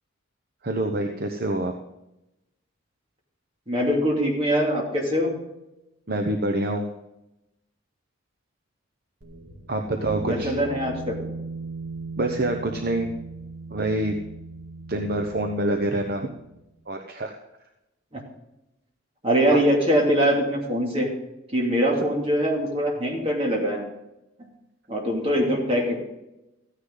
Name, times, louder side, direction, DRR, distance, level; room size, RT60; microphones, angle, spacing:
voice 1, 0.6-1.7 6.1-6.9 9.7-10.5 12.2-13.1 13.7-14.1 14.9-16.3 16.9-17.4 19.5-19.6, right 1 dB, 45° right, 4 dB, 0.9 m, -26 dB
voice 2, 3.7-5.3 10.3-11.2 18.1-18.2 19.2-21.1 21.5-23.8 24.9-26.0, equal, 30° right, -1 dB, 2.6 m, -23 dB
sound 1, 9.2-16.6, right 2 dB, 65° right, 2.2 m, -38 dB
14.5 x 9.9 x 3.9 m, 0.93 s
head